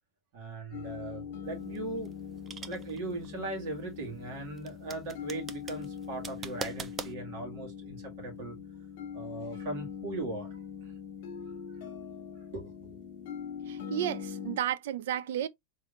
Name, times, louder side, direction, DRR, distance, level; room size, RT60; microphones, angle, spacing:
voice 1, 0.3-2.1 2.6-8.6 9.1-10.9 12.5-12.7, right 2 dB, 60° right, 2.2 m, -39 dB
sound 1, 0.7-14.6, left 7 dB, 65° left, 1.2 m, -42 dB
sound 2, 1.5-7.1, right 5 dB, 20° right, 0.4 m, -43 dB
voice 2, 13.7-15.5, right 11 dB, 80° right, 0.5 m, -32 dB
3.8 x 3.5 x 2.6 m
supercardioid pair, 155°, 0 cm